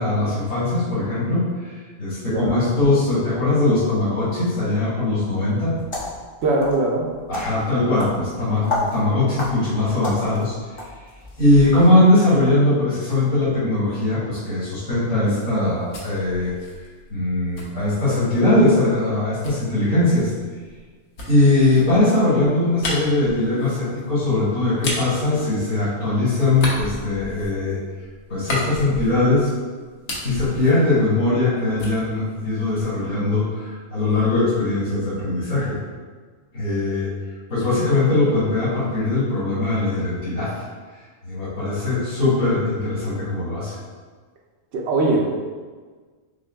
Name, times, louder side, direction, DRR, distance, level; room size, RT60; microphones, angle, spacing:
voice 1, 0.0-5.7 7.3-10.5 11.4-16.8 17.1-20.3 21.2-27.8 28.3-29.5 30.2-35.8 36.5-37.1 37.5-40.6 41.2-43.8, left 2 dB, 80° left, -13 dB, 1.9 m, -20 dB
voice 2, 2.3-2.6 6.4-7.1 44.7-45.3, right 2 dB, 65° right, -1 dB, 0.8 m, -21 dB
sound 1, 5.7-11.9, left 2 dB, 30° left, 0.6 m, -32 dB
sound 2, 15.5-18.5 19.4-26.1 26.5-29.5 29.8-31.5 31.8-33.1, left 1 dB, 65° left, 1.0 m, -34 dB
6.2 x 2.2 x 2.2 m, 1.5 s
omnidirectional pair, 1.3 m